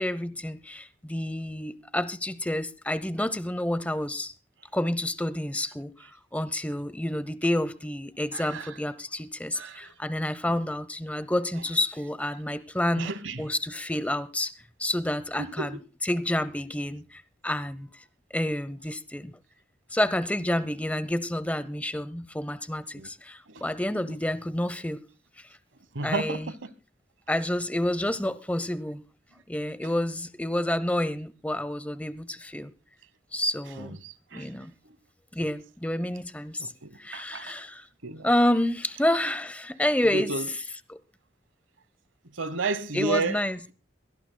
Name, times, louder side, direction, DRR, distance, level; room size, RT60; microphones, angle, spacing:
voice 1, 0.0-4.3 4.7-5.9 6.3-13.1 13.4-14.5 14.8-17.9 18.3-19.4 19.9-25.0 26.0-26.5 27.3-29.0 29.5-32.7 33.3-34.0 34.3-34.7 35.3-36.7 37.0-37.9 38.2-40.4 40.9-41.0 42.9-43.6, left 1 dB, 5° left, 0.7 m, -29 dB
voice 2, 8.3-8.7 9.5-9.9 13.0-13.4 15.4-15.8 22.9-23.1 23.5-23.6 25.9-26.4 33.8-34.5 36.6-37.5 38.0-38.3 40.1-40.4 42.3-43.4, right 3 dB, 85° right, 1.1 m, -32 dB
23.0 x 18.0 x 2.2 m
head